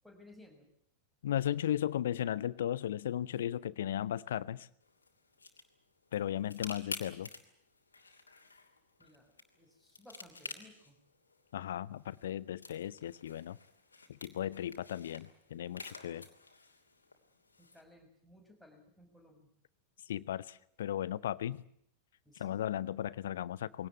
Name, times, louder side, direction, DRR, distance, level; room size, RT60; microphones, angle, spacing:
voice 1, 0.0-0.7 9.0-11.0 17.6-19.5 22.2-22.6, left 1 dB, ahead, 4 dB, 6.4 m, -59 dB
voice 2, 1.2-4.7 6.1-7.3 11.5-13.6 14.1-16.3 20.1-21.6 22.3-23.9, left 11 dB, 60° left, 20 dB, 0.8 m, -36 dB
sound 1, 4.8-17.8, left 3 dB, 75° left, 2.9 m, -51 dB
22.0 x 18.0 x 9.4 m, 0.70 s
figure-of-eight pair, 90°, 0 cm